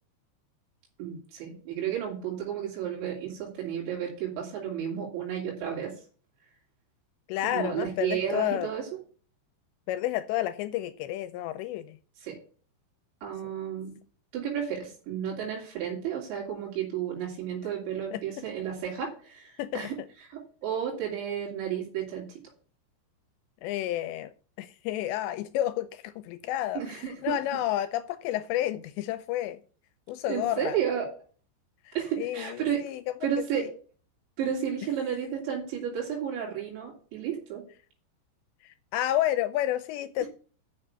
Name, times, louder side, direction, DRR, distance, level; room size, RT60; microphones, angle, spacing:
voice 1, 1.0-5.9 7.4-8.9 12.2-12.4 13.2-13.9 14.3-22.3 26.8-27.4 30.3-31.1 32.0-32.8 33.2-33.7 34.4-37.6 40.2-40.3, right 9 dB, 75° right, -2 dB, 5.4 m, -32 dB
voice 2, 7.3-8.7 9.9-12.0 13.4-13.5 18.1-18.2 19.6-19.9 23.6-24.3 24.6-29.6 30.1-30.8 31.9-33.0 33.5-33.7 38.6-40.3, left 13 dB, 80° left, 12 dB, 2.7 m, -30 dB
7.4 x 6.6 x 8.1 m, 0.41 s
omnidirectional pair, 5.2 m